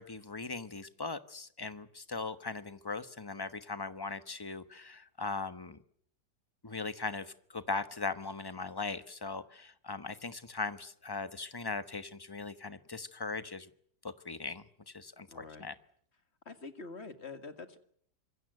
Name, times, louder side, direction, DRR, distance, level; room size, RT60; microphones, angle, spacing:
voice 1, 0.0-5.8 6.6-13.7 14.0-15.7, left 4 dB, 15° left, 12 dB, 1.0 m, -39 dB
voice 2, 15.3-15.6 16.5-17.8, left 3 dB, 40° left, 9 dB, 2.1 m, -45 dB
26.0 x 22.5 x 7.9 m, 0.63 s
omnidirectional pair, 1.8 m